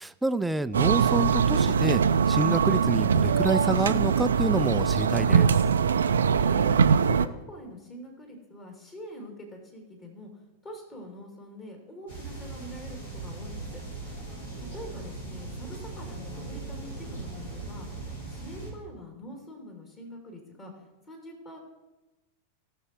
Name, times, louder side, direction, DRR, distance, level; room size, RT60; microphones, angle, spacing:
voice 1, 0.0-5.5, right 2 dB, 5° right, 13 dB, 0.4 m, -28 dB
sound 1, 0.7-7.3, right 6 dB, 70° right, 0.5 m, -22 dB
voice 2, 7.0-10.3 10.6-13.8 14.6-21.6, equal, 25° left, 1 dB, 2.7 m, -44 dB
sound 2, 12.1-18.7, right 3 dB, 65° left, 4.5 m, -39 dB
17.5 x 6.5 x 4.5 m, 1.1 s
figure-of-eight pair, 90°, 0 cm